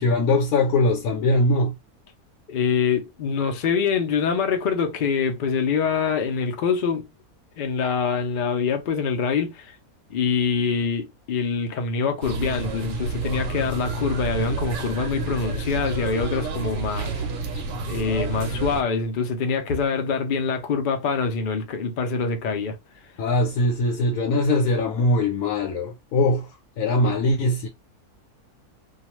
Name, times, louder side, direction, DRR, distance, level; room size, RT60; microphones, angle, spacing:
voice 1, 0.0-1.8 23.2-27.7, left 2 dB, 80° left, 1.1 m, -21 dB
voice 2, 2.5-7.0 7.6-9.7 10.1-17.2 17.5-22.8, left 5 dB, 65° left, 0.5 m, -25 dB
sound 1, 12.2-18.8, right 3 dB, 65° right, 0.9 m, -29 dB
2.3 x 2.3 x 3.0 m
omnidirectional pair, 1.5 m